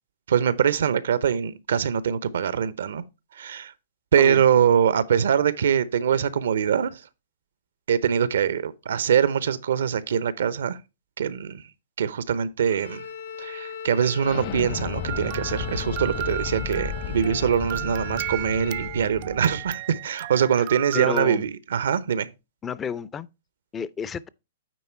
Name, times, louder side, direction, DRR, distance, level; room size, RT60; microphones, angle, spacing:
voice 1, 0.3-3.0 3.4-3.7 4.1-7.0 7.9-10.8 11.2-11.6 12.0-13.1 13.4-22.3, right 8 dB, 80° right, 0.7 m, -23 dB
Bowed string instrument, 12.6-19.0, left 6 dB, 70° left, 2.2 m, -39 dB
Explosion, 14.2-19.7, left 8 dB, 45° left, 0.8 m, -34 dB
sound 1, 15.1-21.3, right 19 dB, 45° right, 0.3 m, -35 dB
voice 2, 20.9-21.5 22.6-23.3 23.7-24.3, left 7 dB, 20° left, 0.4 m, -31 dB
9.3 x 3.6 x 4.5 m
hypercardioid pair, 130°, 0 cm